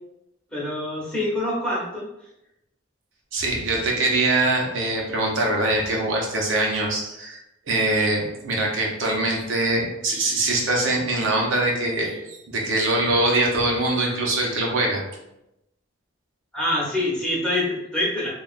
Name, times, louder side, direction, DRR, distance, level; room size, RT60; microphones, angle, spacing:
voice 1, 0.5-2.1 16.5-18.3, left 1 dB, 5° left, -7 dB, 0.9 m, -25 dB
voice 2, 3.3-7.4 7.7-15.0, right 2 dB, 80° right, -1 dB, 0.7 m, -23 dB
3.4 x 2.3 x 2.4 m, 0.88 s
head